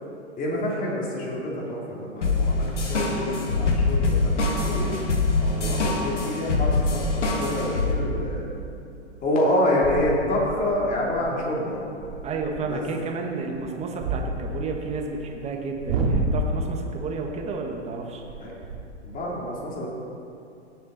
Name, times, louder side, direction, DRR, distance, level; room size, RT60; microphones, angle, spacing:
voice 1, 0.4-4.9 5.5-8.5 9.2-11.8 12.6-12.8 18.4-18.5 19.0-19.9, left 1 dB, 25° left, -3 dB, 2.8 m, -27 dB
sound 1, 2.2-7.9, left 3 dB, 90° left, 1.8 m, -24 dB
sound 2, 2.3-2.4 6.0-6.3 6.7-7.0 7.4-7.5 7.8-8.1 8.6-8.8 9.3-9.4 9.8-12.7 13.4-15.2 15.7-16.8 18.2-19.2, right 2 dB, 50° right, 2.0 m, -31 dB
voice 2, 5.4-5.8 12.2-18.2, right 4 dB, 20° right, 1 dB, 1.3 m, -32 dB
17.0 x 7.3 x 4.0 m, 2.6 s
hypercardioid pair, 125°, 35 cm